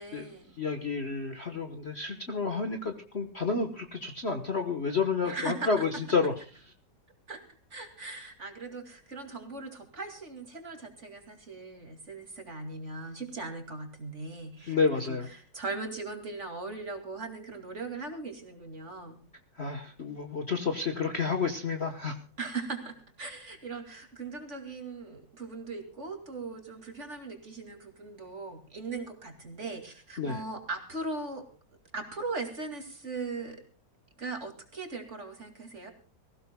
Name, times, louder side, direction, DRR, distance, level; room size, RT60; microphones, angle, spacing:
voice 1, 0.0-0.5 5.2-5.9 7.3-7.4 7.7-19.2 22.4-31.4 31.9-33.6 34.2-35.9, right 3 dB, 35° right, 4 dB, 2.7 m, -39 dB
voice 2, 0.6-6.3 14.7-15.3 19.6-22.2 30.2-30.4, left 4 dB, 40° left, 5 dB, 1.2 m, -30 dB
24.5 x 16.0 x 2.2 m, 0.42 s
omnidirectional pair, 2.2 m